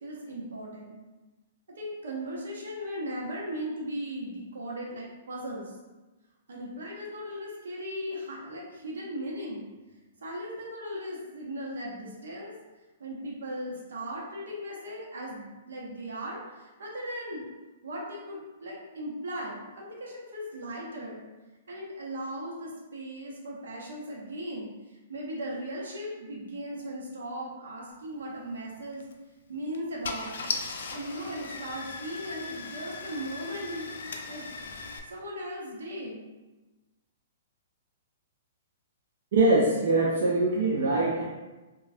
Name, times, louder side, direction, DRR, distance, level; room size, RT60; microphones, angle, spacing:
voice 1, 0.0-1.0 1.7-5.8 6.5-9.7 10.2-12.5 13.0-17.5 17.8-21.3 21.7-29.1 29.5-30.5 30.9-33.9 34.3-34.5 35.1-36.3, equal, 85° right, -3 dB, 0.8 m, -37 dB
Car / Engine starting, 28.9-29.1 29.7-29.8 30.0-35.0, left 4 dB, 75° left, 0.3 m, -38 dB
voice 2, 39.3-41.2, right 2 dB, 65° right, -4 dB, 0.5 m, -23 dB
3.0 x 2.3 x 2.6 m, 1.2 s
hypercardioid pair, 145°, 0 cm